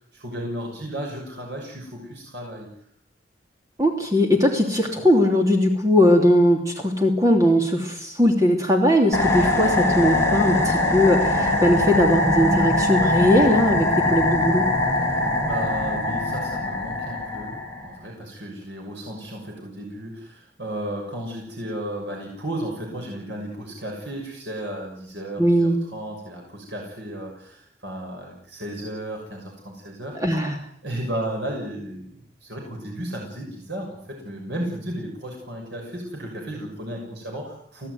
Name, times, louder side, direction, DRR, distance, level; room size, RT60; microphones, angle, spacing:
voice 1, 0.0-2.7 14.9-30.2 30.8-32.1 32.4-37.9, right 1 dB, 70° right, 0 dB, 6.6 m, -34 dB
voice 2, 3.8-14.6 25.4-25.8 30.1-30.6, left 1 dB, 20° right, 2 dB, 3.0 m, -19 dB
sound 1, 9.1-17.9, left 2 dB, 15° left, 5.5 m, -22 dB
25.0 x 17.5 x 9.5 m, 0.68 s
head